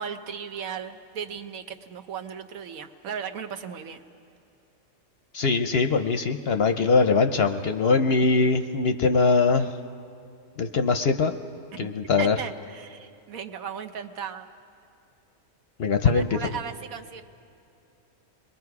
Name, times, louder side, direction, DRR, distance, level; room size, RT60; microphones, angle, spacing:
voice 1, 0.0-4.0 12.2-14.5 16.0-17.2, right 7 dB, 75° right, 7 dB, 1.3 m, -36 dB
voice 2, 5.3-9.7 10.6-11.3 11.8-12.4 15.8-16.3, left 4 dB, 55° left, 7 dB, 0.8 m, -22 dB
28.0 x 21.5 x 4.8 m, 2.6 s
omnidirectional pair, 1.5 m